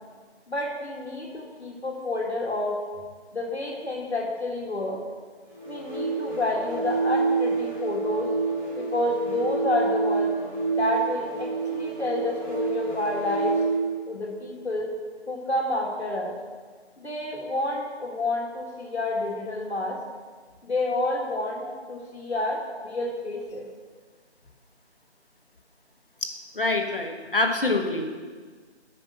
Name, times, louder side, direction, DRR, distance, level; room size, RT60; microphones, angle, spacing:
voice 1, 0.5-2.8 3.3-5.0 5.7-8.3 8.8-10.3 10.7-13.5 14.1-14.9 15.3-16.3 17.0-20.0 20.6-23.6, left 2 dB, 65° left, -2 dB, 2.1 m, -29 dB
sound 1, 5.5-13.9, right 4 dB, 10° right, 1.7 m, -28 dB
voice 2, 26.2-28.1, left 2 dB, 50° left, 4 dB, 1.4 m, -26 dB
8.8 x 6.1 x 6.5 m, 1.5 s
figure-of-eight pair, 175°, 34 cm